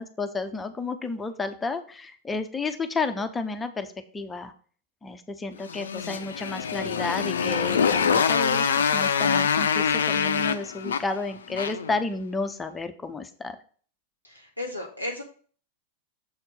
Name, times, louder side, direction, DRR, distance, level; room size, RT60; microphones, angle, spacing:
voice 1, 0.0-4.5 5.0-13.6, left 3 dB, 15° left, 8 dB, 0.7 m, -32 dB
Motorcycle, 5.6-12.0, left 6 dB, 65° left, 0.4 m, -24 dB
voice 2, 14.2-15.2, left 1 dB, 85° right, 0 dB, 1.9 m, -34 dB
7.1 x 4.4 x 5.2 m, 0.43 s
figure-of-eight pair, 90°, 0 cm